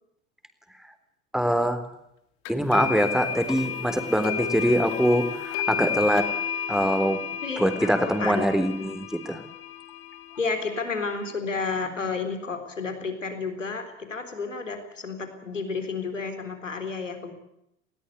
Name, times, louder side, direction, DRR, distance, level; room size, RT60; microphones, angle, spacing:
voice 1, 1.3-1.8 2.5-6.3 6.7-7.2 7.6-9.4, equal, ahead, 8 dB, 3.6 m, -23 dB
sound 1, 2.5-11.3, left 8 dB, 60° left, 2.6 m, -32 dB
voice 2, 7.4-8.7 10.4-17.3, left 4 dB, 90° left, 7 dB, 3.9 m, -31 dB
20.5 x 18.5 x 8.2 m, 0.79 s
figure-of-eight pair, 80°, 37 cm